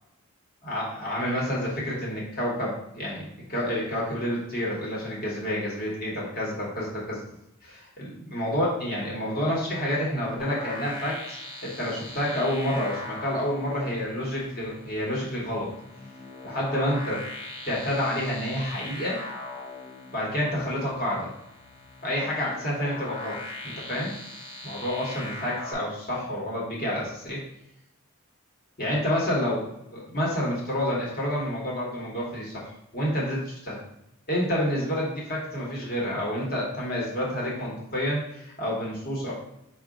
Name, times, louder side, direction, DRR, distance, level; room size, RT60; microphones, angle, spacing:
voice 1, 0.6-7.2 7.6-15.7 16.4-17.2 17.6-19.2 20.1-21.3 22.0-23.4 23.6-24.1 24.6-27.4 28.8-29.7 29.9-33.8 34.3-39.3, equal, 40° left, -5 dB, 1.1 m, -29 dB
sound 1, 10.4-25.7, left 2 dB, 25° left, 0.7 m, -41 dB
4.7 x 2.4 x 3.7 m, 0.82 s
head